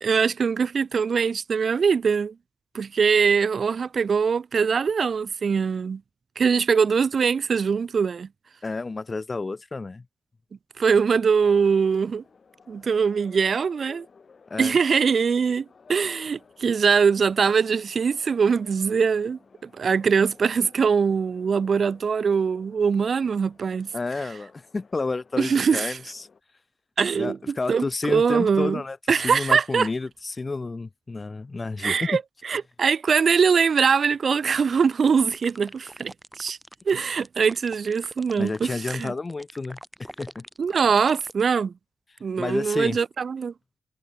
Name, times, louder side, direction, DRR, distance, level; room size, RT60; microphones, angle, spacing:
voice 1, 0.0-2.3 2.7-6.0 6.4-8.3 10.8-12.2 12.7-14.1 14.6-23.9 25.4-26.0 27.0-28.8 29.1-29.9 31.8-36.6 36.9-39.1 40.6-41.7 42.2-43.5, right 6 dB, 60° right, 0.8 m, -22 dB
voice 2, 8.6-10.0 14.5-14.8 23.9-26.3 27.2-32.1 38.4-40.4 42.4-43.0, left 3 dB, 35° left, 0.4 m, -31 dB
sound 1, 11.4-26.4, left 5 dB, 50° left, 7.7 m, -54 dB
sound 2, 35.0-41.4, right 1 dB, 5° right, 1.4 m, -44 dB
cardioid pair, 90°, 0 cm